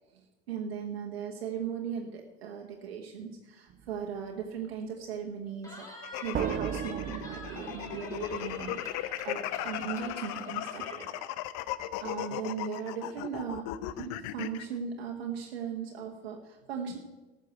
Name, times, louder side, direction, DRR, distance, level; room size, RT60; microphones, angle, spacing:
voice 1, 0.1-11.3 12.0-17.0, right 7 dB, 80° right, 1 dB, 1.2 m, -38 dB
sound 1, 3.7-4.0 6.3-9.0, right 9 dB, 30° right, 0.7 m, -37 dB
Cheering, 5.6-11.1, equal, 10° left, 5.1 m, -47 dB
sound 2, 6.0-14.7, left 14 dB, 60° left, 0.7 m, -37 dB
13.0 x 6.5 x 7.8 m, 1.2 s
hypercardioid pair, 75°, 30 cm